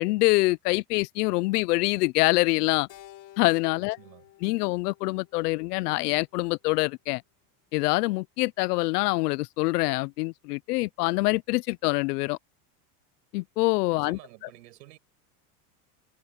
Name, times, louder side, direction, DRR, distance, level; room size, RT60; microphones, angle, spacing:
voice 1, 0.0-2.9 3.4-4.0 4.4-7.2 7.7-12.4 13.3-14.2, left 23 dB, 70° left, 0.7 m, -25 dB
Keyboard (musical), 2.9-7.3, left 13 dB, 40° left, 4.3 m, -54 dB
voice 2, 3.8-4.3 13.9-15.0, right 16 dB, 85° right, 6.2 m, -51 dB
supercardioid pair, 135°, 48 cm